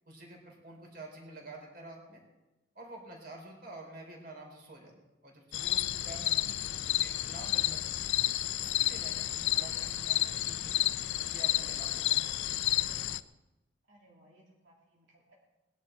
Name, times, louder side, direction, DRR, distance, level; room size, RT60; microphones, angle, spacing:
voice 1, 0.1-2.2 2.7-4.9 5.2-8.1 8.6-10.7 11.2-12.4 12.9-13.0, right 2 dB, 50° right, 1 dB, 3.9 m, -49 dB
sound 1, 5.5-13.2, left 14 dB, 70° left, 0.5 m, -31 dB
voice 2, 11.6-11.9 13.9-15.3, equal, 70° right, -5 dB, 2.7 m, -61 dB
20.0 x 11.0 x 4.4 m, 1.0 s
head